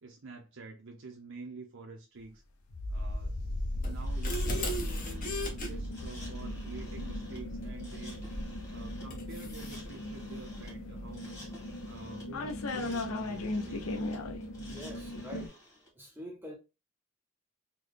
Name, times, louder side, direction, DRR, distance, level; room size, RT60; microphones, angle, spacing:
voice 1, 0.0-2.4 2.9-3.4 3.7-8.4 8.7-11.5 11.9-13.8, right 3 dB, 60° right, 0.6 m, -48 dB
sound 1, 2.7-15.5, left 1 dB, 75° left, 0.6 m, -37 dB
sound 2, 3.8-5.7 8.3-8.6 9.1-9.8, equal, 40° left, 0.9 m, -37 dB
sound 3, 4.0-15.9, left 1 dB, 15° left, 1.4 m, -53 dB
voice 2, 14.7-15.6 15.9-16.6, equal, 10° right, 0.6 m, -45 dB
3.9 x 2.2 x 3.2 m
head